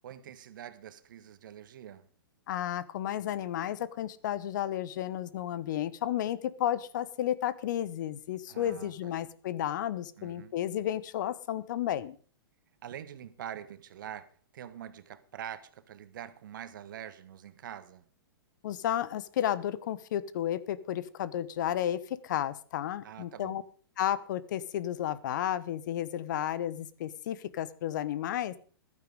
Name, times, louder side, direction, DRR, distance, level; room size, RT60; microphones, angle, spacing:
voice 1, 0.0-2.1 8.5-9.3 10.2-10.5 12.8-14.3 14.5-18.0 23.0-23.6, right 10 dB, 60° right, 1.4 m, -45 dB
voice 2, 2.5-12.2 18.6-23.6 24.0-28.6, left 11 dB, 55° left, 0.9 m, -32 dB
14.5 x 12.0 x 5.0 m
figure-of-eight pair, 110°, 12 cm